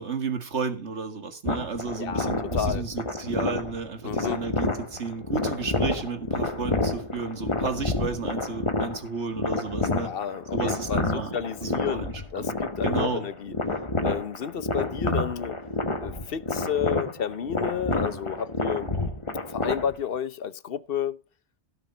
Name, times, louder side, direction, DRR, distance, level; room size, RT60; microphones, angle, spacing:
voice 1, 0.0-10.1 10.5-11.4 11.6-13.3, right 5 dB, 80° right, 2.1 m, -32 dB
sound 1, 1.5-20.2, left 2 dB, 25° left, 1.5 m, -29 dB
voice 2, 2.0-2.8 4.0-4.4 10.0-13.5 14.0-15.6 16.0-18.9 19.5-21.2, left 8 dB, 60° left, 0.9 m, -31 dB
17.0 x 6.6 x 4.4 m
omnidirectional pair, 1.2 m